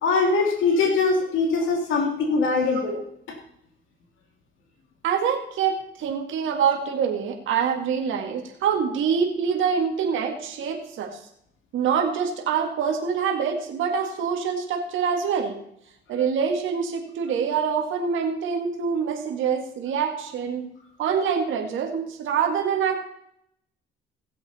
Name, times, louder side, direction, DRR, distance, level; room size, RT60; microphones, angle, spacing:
voice 1, 0.0-3.0 3.3-3.4, left 4 dB, 85° left, 2 dB, 2.6 m, -22 dB
voice 2, 5.0-11.1 11.7-15.6 16.1-20.7 21.0-23.0, right 7 dB, 80° right, 3 dB, 1.9 m, -25 dB
16.5 x 7.8 x 4.2 m, 0.73 s
cardioid pair, 90°, 20 cm